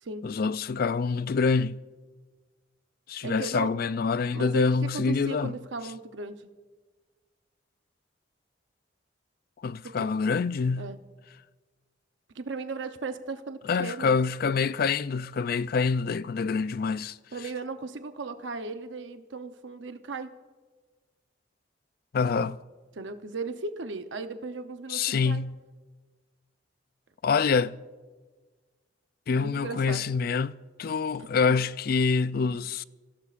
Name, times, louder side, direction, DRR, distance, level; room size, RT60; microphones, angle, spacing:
voice 1, 0.2-1.8 3.1-5.6 9.6-10.9 13.7-17.2 22.1-22.6 24.9-25.6 27.2-27.7 29.3-30.5 30.8-32.8, left 5 dB, 55° left, 0.4 m, -26 dB
voice 2, 3.2-3.7 4.3-6.4 9.8-10.1 10.8-11.0 12.3-14.1 17.3-20.3 22.9-25.4 29.3-30.0 31.4-31.6 32.4-32.5, right 3 dB, 80° right, 0.8 m, -36 dB
27.5 x 16.5 x 2.5 m
head